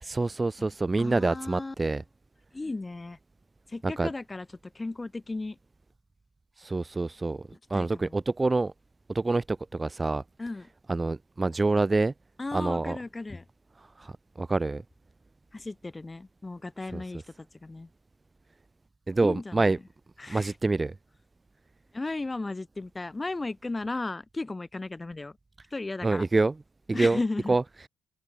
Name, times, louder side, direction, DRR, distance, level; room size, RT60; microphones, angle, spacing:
voice 1, 0.0-2.0 3.8-4.1 6.6-7.4 7.7-8.7 9.1-10.2 10.9-12.1 12.5-13.0 14.0-14.8 16.9-17.0 19.1-19.8 20.3-20.9 26.0-26.5 26.9-27.2 27.5-27.6, right 3 dB, 25° right, 0.7 m, -26 dB
voice 2, 1.0-1.8 2.5-3.2 3.7-4.5 4.8-5.6 7.7-8.1 10.4-10.7 12.4-13.5 15.5-17.9 19.2-19.8 20.2-20.5 21.9-25.4 25.7-26.2 26.9-27.6, left 2 dB, 20° left, 3.5 m, -35 dB
open air
cardioid pair, 75°, 0 cm